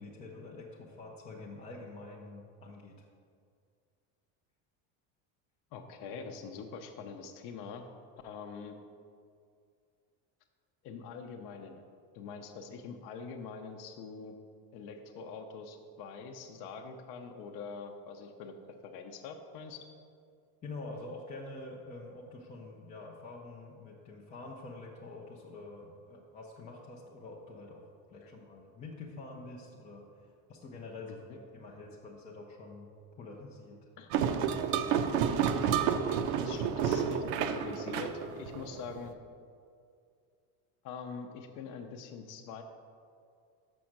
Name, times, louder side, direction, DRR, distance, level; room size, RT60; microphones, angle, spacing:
voice 1, 0.0-3.1 20.6-32.9 33.2-33.8, left 2 dB, 20° left, -3 dB, 0.4 m, -46 dB
voice 2, 5.7-7.9 8.2-8.8 10.8-11.8 12.1-14.4 14.7-18.6 18.8-19.8 28.2-28.3 34.0-34.1 36.4-39.2 40.8-42.6, left 5 dB, 50° left, 4 dB, 0.7 m, -44 dB
sound 1, 34.1-39.0, right 7 dB, 80° right, 0.7 m, -30 dB
6.3 x 6.2 x 5.9 m, 2.3 s
cardioid pair, 170°, 41 cm